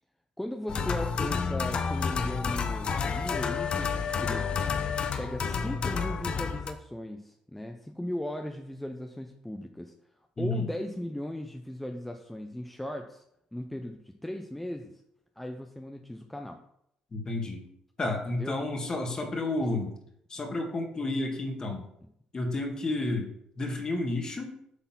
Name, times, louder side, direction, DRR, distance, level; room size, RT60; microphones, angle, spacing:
voice 1, 0.4-4.7 5.2-9.9 10.4-13.2 13.5-14.9 15.4-16.6 18.3-18.6, left 1 dB, 5° left, 5 dB, 0.7 m, -37 dB
sound 1, 0.7-6.7, left 5 dB, 50° left, 0.8 m, -30 dB
voice 2, 10.4-10.7 17.1-17.6 18.0-19.9 20.3-21.8 22.3-24.6, left 2 dB, 30° left, 3 dB, 1.8 m, -31 dB
8.2 x 3.9 x 5.9 m, 0.74 s
cardioid pair, 90°, 2 cm